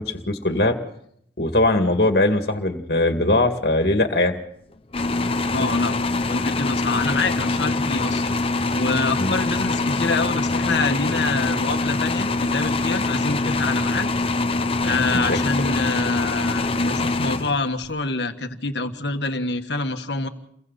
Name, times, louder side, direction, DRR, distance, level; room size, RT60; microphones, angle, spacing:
voice 1, 0.1-0.8 1.4-4.4 9.2-9.3 14.8-15.4, left 2 dB, 60° left, 5 dB, 2.2 m, -21 dB
sound 1, 4.9-17.9, left 3 dB, 30° left, 0.9 m, -24 dB
voice 2, 5.5-6.0 6.3-8.3 8.7-14.1 14.8-20.3, left 3 dB, 75° left, 7 dB, 1.6 m, -26 dB
30.0 x 22.5 x 4.1 m, 0.69 s
head